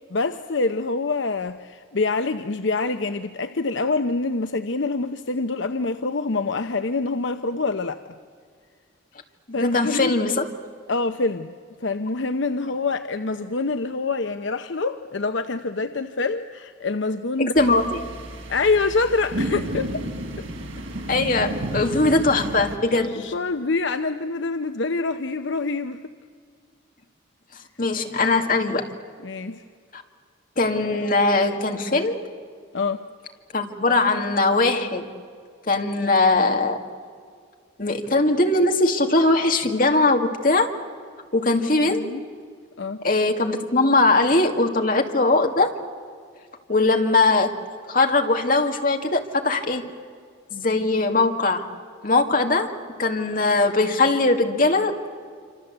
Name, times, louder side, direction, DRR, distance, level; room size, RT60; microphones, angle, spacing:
voice 1, 0.1-8.0 9.5-10.1 10.9-11.5 11.8-17.5 18.5-20.0 22.9-26.1 29.2-29.6 32.7-33.0 41.8-42.2 42.8-43.0, left 3 dB, 70° left, 9 dB, 0.8 m, -26 dB
voice 2, 9.5-10.5 17.4-18.0 21.1-23.2 27.8-28.9 29.9-30.0 30.6-32.2 33.5-35.1 35.7-36.8 37.8-40.7 41.3-42.1 43.0-45.7 46.7-47.6 47.9-49.8 50.5-51.7 52.0-52.7 53.0-55.1, left 2 dB, 45° left, 4 dB, 2.1 m, -20 dB
sound 1, 17.6-22.8, right 1 dB, 85° right, 3.6 m, -31 dB
26.5 x 26.5 x 8.0 m, 2.1 s
head